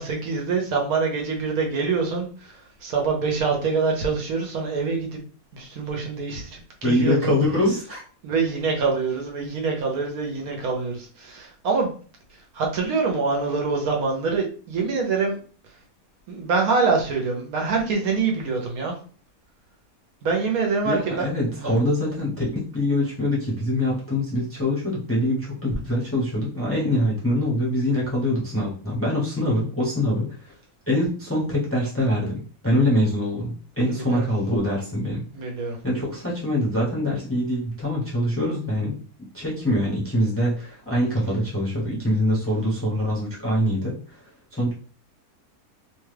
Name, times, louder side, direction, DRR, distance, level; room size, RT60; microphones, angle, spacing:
voice 1, 0.0-5.2 5.5-7.4 8.2-11.9 12.3-15.4 16.3-19.0 20.2-21.3 21.6-21.7 33.9-34.2 35.3-35.8, right 4 dB, 70° right, 1 dB, 1.2 m, -25 dB
voice 2, 6.8-8.0 20.8-30.5 30.9-35.2 35.8-38.9 39.3-44.2 44.5-44.7, left 1 dB, 10° left, -5 dB, 0.7 m, -24 dB
3.0 x 2.3 x 3.2 m, 0.41 s
omnidirectional pair, 1.6 m